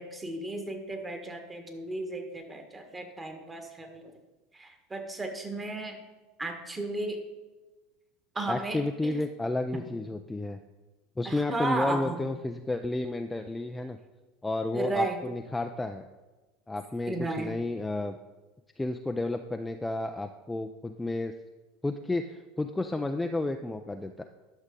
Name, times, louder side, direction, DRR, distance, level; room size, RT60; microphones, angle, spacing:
voice 1, 0.0-4.1 4.5-6.0 6.4-7.2 8.3-9.2 11.2-12.2 14.7-15.2 17.1-17.5, right 2 dB, 15° right, 5 dB, 1.4 m, -34 dB
voice 2, 8.5-10.6 11.2-14.0 14.4-16.0 16.7-18.2 18.8-21.3 21.8-24.2, left 2 dB, 10° left, 6 dB, 0.4 m, -32 dB
11.5 x 6.4 x 3.7 m, 1.2 s
figure-of-eight pair, 75°, 0 cm